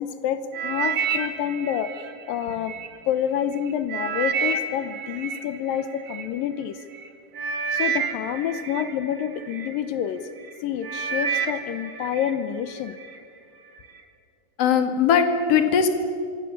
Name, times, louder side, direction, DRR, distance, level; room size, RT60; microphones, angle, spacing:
voice 1, 0.0-1.9 2.3-2.8 3.1-6.8 7.7-10.3 10.6-13.0, left 9 dB, 85° left, 11 dB, 2.7 m, -28 dB
sound 1, 0.5-2.9 3.4-6.2 6.9-7.1 7.4-9.7 10.3-10.5 10.8-12.4 12.7-13.2 13.8-13.9, right 6 dB, 60° right, 3.4 m, -29 dB
voice 2, 14.6-15.9, left 7 dB, 50° left, 7 dB, 2.9 m, -19 dB
25.5 x 25.0 x 7.3 m, 2.4 s
omnidirectional pair, 4.0 m